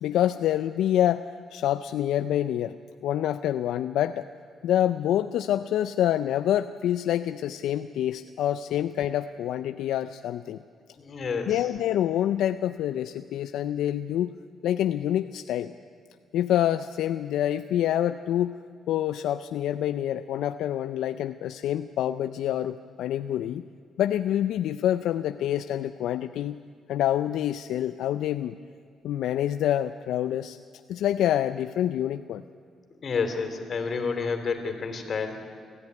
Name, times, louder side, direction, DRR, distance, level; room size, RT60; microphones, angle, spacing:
voice 1, 0.0-4.3 4.6-10.6 11.5-14.4 14.6-15.7 16.3-23.6 24.0-26.6 26.9-28.6 29.0-30.6 30.9-32.4, left 11 dB, 80° left, 11 dB, 0.5 m, -27 dB
voice 2, 11.0-11.5 33.0-35.3, left 5 dB, 50° left, 6 dB, 3.3 m, -29 dB
25.0 x 14.0 x 9.6 m, 2.2 s
cardioid pair, 90°, 0 cm